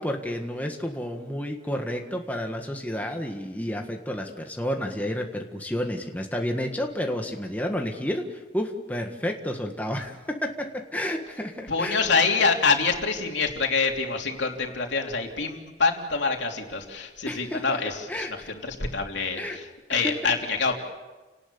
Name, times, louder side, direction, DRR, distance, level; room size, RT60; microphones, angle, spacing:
voice 1, 0.0-12.0 17.3-17.8 18.1-18.5 19.4-19.6 19.9-20.1, equal, 10° left, 2 dB, 1.7 m, -31 dB
voice 2, 11.7-20.8, left 4 dB, 90° left, 2 dB, 3.2 m, -26 dB
30.0 x 19.0 x 7.0 m, 1.2 s
head